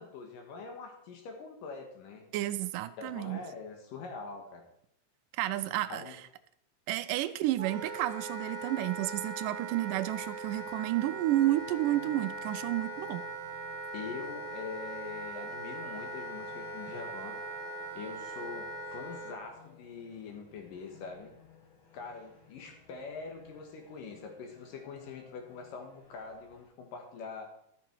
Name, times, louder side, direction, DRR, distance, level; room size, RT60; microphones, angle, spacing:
voice 1, 0.0-2.2 3.0-4.7 5.9-6.2 13.9-17.4 17.9-21.3 21.9-27.5, left 4 dB, 85° left, 4 dB, 3.2 m, -44 dB
voice 2, 2.3-3.4 5.4-6.0 6.9-13.3, right 15 dB, 85° right, 13 dB, 2.1 m, -31 dB
Wind instrument woodwind instrument, 7.6-19.4, right 2 dB, 50° right, 1.8 m, -40 dB
sound 1, 9.9-26.7, left 5 dB, 45° left, 2.0 m, -58 dB
12.0 x 7.2 x 4.5 m, 0.76 s
omnidirectional pair, 3.8 m